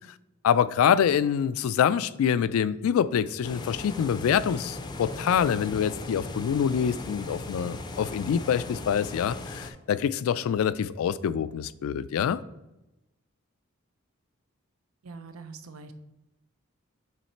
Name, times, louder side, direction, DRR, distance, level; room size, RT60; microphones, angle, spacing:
voice 1, 0.4-12.4, left 8 dB, 85° left, 16 dB, 0.3 m, -25 dB
sound 1, 3.4-9.7, left 2 dB, 20° left, 0.4 m, -38 dB
voice 2, 15.0-15.9, right 4 dB, 85° right, 9 dB, 0.6 m, -43 dB
7.0 x 3.2 x 4.3 m, 0.94 s
head